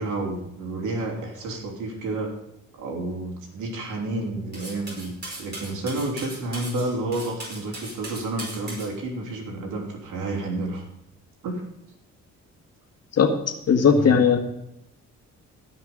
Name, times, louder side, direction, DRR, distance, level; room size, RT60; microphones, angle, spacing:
voice 1, 0.0-2.3 2.7-10.8 11.4-11.6 13.9-14.2, right 2 dB, 85° right, 0 dB, 3.1 m, -30 dB
Cutlery silverware, 4.5-8.9, right 2 dB, 35° right, 5.2 m, -38 dB
voice 2, 13.7-14.4, left 6 dB, 55° left, 5 dB, 1.9 m, -17 dB
17.0 x 5.9 x 5.2 m, 0.82 s
cardioid pair, 90°, 30 cm